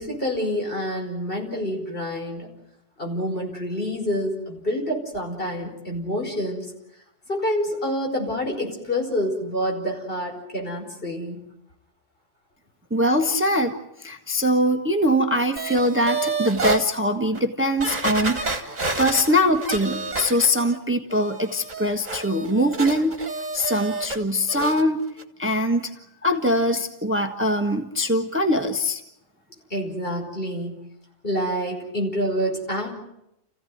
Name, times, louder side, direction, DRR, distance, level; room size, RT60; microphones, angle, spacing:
voice 1, 0.0-2.5 3.0-6.7 7.3-11.4 29.7-30.8 31.2-32.9, equal, 50° left, 0 dB, 5.6 m, -27 dB
voice 2, 12.9-18.7 19.0-23.2 23.5-25.0 25.4-25.9 26.2-29.0, equal, 10° right, 5 dB, 1.3 m, -22 dB
sound 1, 15.6-16.8 17.3-17.4 17.8-20.8 21.1-24.2 24.5-24.8 25.2-25.3, right 3 dB, 35° right, 1.8 m, -29 dB
29.5 x 16.0 x 9.4 m, 0.85 s
omnidirectional pair, 1.2 m